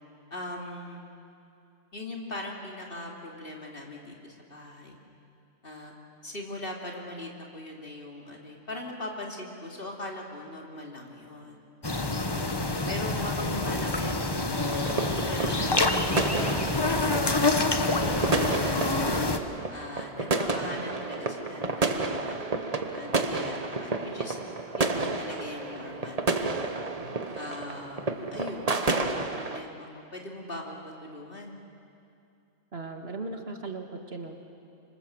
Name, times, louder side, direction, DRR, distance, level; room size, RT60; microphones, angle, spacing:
voice 1, 0.3-1.1 1.9-5.0 5.6-5.9 6.2-11.6 12.3-14.4 14.9-17.8 18.2-19.2 19.7-24.4 24.8-26.5 27.4-31.6, left 1 dB, 45° left, 0 dB, 3.0 m, -40 dB
sound 1, 11.8-19.4, left 2 dB, 20° left, 1.1 m, -27 dB
sound 2, 14.5-29.6, right 3 dB, 30° right, 1.1 m, -31 dB
voice 2, 26.8-27.2 32.7-34.5, right 3 dB, 50° right, 4 dB, 1.9 m, -38 dB
26.0 x 25.5 x 7.8 m, 2.6 s
omnidirectional pair, 1.4 m